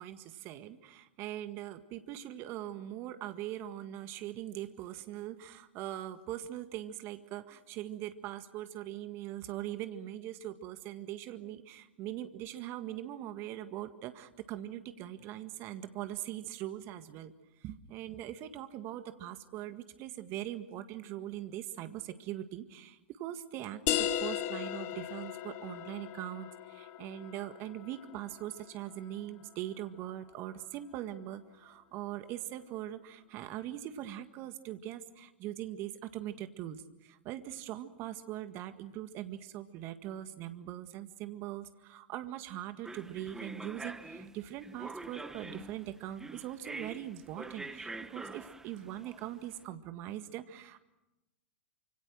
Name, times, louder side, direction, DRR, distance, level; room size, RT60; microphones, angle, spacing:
voice 1, 0.0-17.3 17.6-50.8, right 12 dB, 40° right, 9 dB, 1.8 m, -41 dB
sound 1, 23.9-29.2, left 11 dB, 45° left, 2.1 m, -37 dB
sound 2, 42.8-49.5, right 2 dB, 10° right, 1.6 m, -45 dB
28.5 x 26.0 x 6.4 m, 0.96 s
hypercardioid pair, 105°, 6 cm